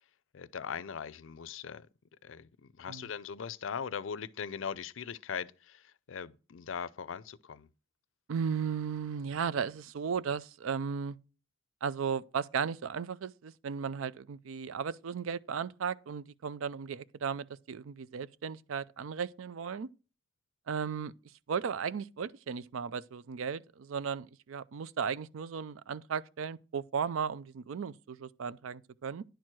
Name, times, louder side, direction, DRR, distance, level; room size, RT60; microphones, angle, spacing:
voice 1, 0.3-1.8 2.2-2.5 2.8-7.7, left 7 dB, 75° left, 0.5 m, -40 dB
voice 2, 8.3-11.2 11.8-19.9 20.7-21.1 21.5-29.2, right 6 dB, 85° right, 0.4 m, -35 dB
10.5 x 4.5 x 6.1 m
head